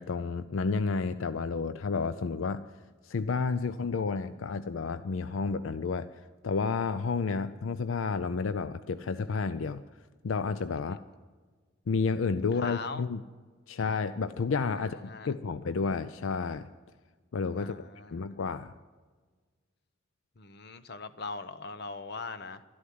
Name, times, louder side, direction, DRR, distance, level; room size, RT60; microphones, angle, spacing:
voice 1, 0.0-2.6 3.0-6.1 6.4-9.8 10.2-11.0 11.9-13.2 13.7-16.7 17.3-17.8 18.1-18.7, left 4 dB, 75° left, 13 dB, 0.5 m, -31 dB
voice 2, 12.5-13.1 14.8-15.3 17.6-18.3 20.4-22.6, left 4 dB, 50° left, 12 dB, 0.8 m, -41 dB
12.5 x 11.5 x 9.4 m, 1.4 s
head